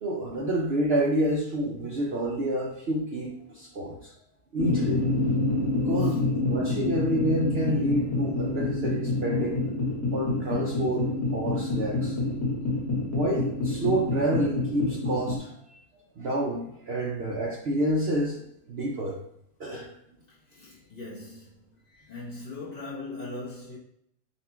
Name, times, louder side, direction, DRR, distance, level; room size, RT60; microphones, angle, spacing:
voice 1, 0.0-4.1 4.5-5.1 5.8-9.6 10.1-12.2 13.1-15.5 16.2-18.4 18.7-19.2 19.6-19.9, right 1 dB, 55° right, 0.8 m, -28 dB
sound 1, 4.6-15.4, left 2 dB, 15° left, 0.9 m, -28 dB
voice 2, 20.3-23.8, left 2 dB, 30° left, 1.2 m, -40 dB
4.1 x 2.6 x 4.3 m
omnidirectional pair, 1.6 m